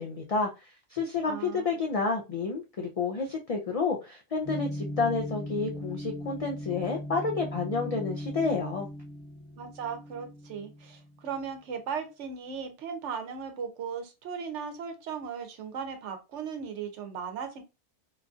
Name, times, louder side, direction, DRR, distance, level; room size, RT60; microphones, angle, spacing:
voice 1, 0.0-8.9, left 4 dB, 75° left, 2 dB, 0.3 m, -30 dB
voice 2, 1.2-1.9 9.6-17.6, right 6 dB, 90° right, 6 dB, 1.0 m, -37 dB
sound 1, 4.4-11.3, equal, 30° left, 1.0 m, -38 dB
3.0 x 2.3 x 2.5 m, 0.27 s
omnidirectional pair, 1.2 m